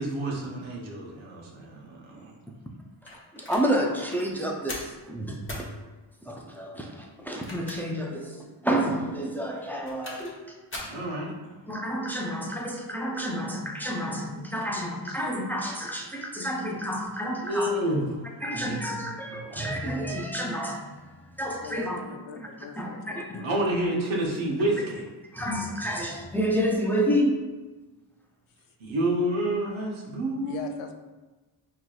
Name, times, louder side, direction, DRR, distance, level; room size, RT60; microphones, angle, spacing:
voice 1, 0.0-2.3 10.9-11.5 17.2-18.2 18.6-18.8 19.3-19.7 23.4-25.0 28.8-30.7, right 1 dB, 70° right, -2 dB, 1.1 m, -29 dB
sound 1, 3.1-3.7 4.1-4.3 4.7-5.0 5.5-5.7 7.2-8.0 8.4-8.5 9.6-10.4 10.7-11.0, left 1 dB, 25° left, 1.2 m, -39 dB
voice 2, 3.3-5.7 6.2-10.9 11.7-17.7 18.4-22.0 22.4-22.5 22.8-23.5 25.3-27.5, equal, 5° left, 0 dB, 0.5 m, -30 dB
voice 3, 21.6-23.7 30.4-30.9, left 8 dB, 75° left, 6 dB, 0.6 m, -42 dB
4.6 x 3.0 x 2.3 m, 1.2 s
cardioid pair, 75°, 48 cm